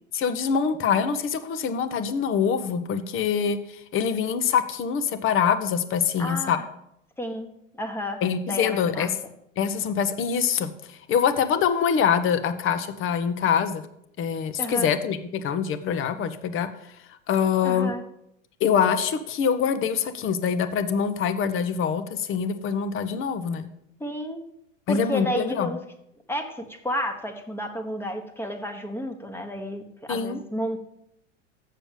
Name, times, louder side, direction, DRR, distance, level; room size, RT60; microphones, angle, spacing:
voice 1, 0.1-6.6 8.2-9.1 9.6-13.9 14.2-16.7 17.3-17.9 18.6-23.7 24.9-25.8 30.1-30.4, left 7 dB, 35° left, 10 dB, 1.0 m, -24 dB
voice 2, 6.2-6.6 7.2-8.2 8.5-9.1 14.6-14.9 17.6-18.0 24.0-24.4 24.9-25.8 26.3-30.8, left 1 dB, 5° left, 6 dB, 1.3 m, -31 dB
7.5 x 6.9 x 7.2 m, 0.78 s
hypercardioid pair, 95°, 37 cm